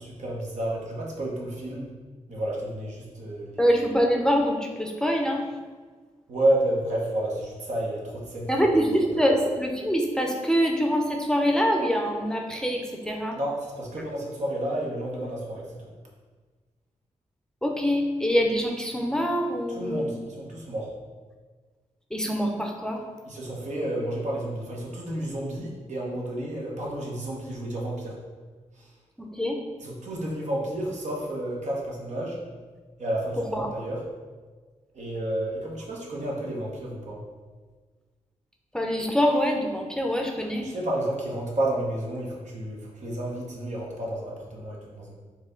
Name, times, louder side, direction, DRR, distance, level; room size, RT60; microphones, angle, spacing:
voice 1, 0.0-1.9 2.3-3.7 6.3-8.5 9.2-9.3 13.3-15.9 19.7-21.0 23.2-28.2 28.8-28.9 29.8-32.4 33.0-34.0 34.9-37.2 40.6-45.2, right 1 dB, 70° right, -3 dB, 1.1 m, -31 dB
voice 2, 3.6-5.5 8.5-13.4 17.6-20.1 22.1-23.0 29.2-29.6 33.5-33.7 38.7-40.7, equal, 5° left, 1 dB, 0.6 m, -24 dB
4.6 x 2.9 x 3.8 m, 1.4 s
cardioid pair, 60°, 13 cm